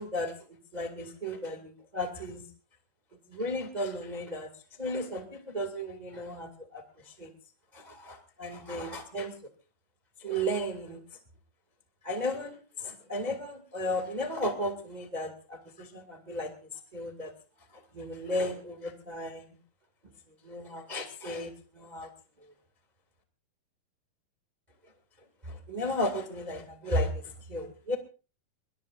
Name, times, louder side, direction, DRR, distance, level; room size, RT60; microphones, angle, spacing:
voice 1, 0.0-2.5 3.3-4.5 4.8-7.3 7.7-9.3 10.2-11.0 12.0-16.5 16.9-17.3 17.7-19.5 20.4-22.1 25.4-28.0, equal, 15° right, 5 dB, 1.3 m, -34 dB
22.5 x 22.0 x 2.5 m, 0.34 s
omnidirectional pair, 4.4 m